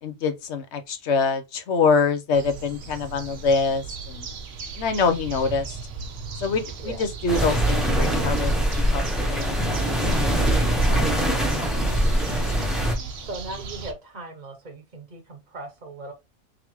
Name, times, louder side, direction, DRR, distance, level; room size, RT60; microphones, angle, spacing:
voice 1, 0.0-4.3 4.7-5.8 6.4-8.5 8.9-9.0 9.3-10.3 10.7-11.7 12.3-12.5 12.9-13.1, left 4 dB, 70° left, 1.0 m, -25 dB
sound 1, 2.3-13.9, right 5 dB, 90° right, 1.1 m, -37 dB
sound 2, 7.3-12.9, right 1 dB, ahead, 0.7 m, -22 dB
voice 2, 13.2-16.1, right 2 dB, 40° right, 0.9 m, -38 dB
3.7 x 3.4 x 3.0 m
omnidirectional pair, 1.2 m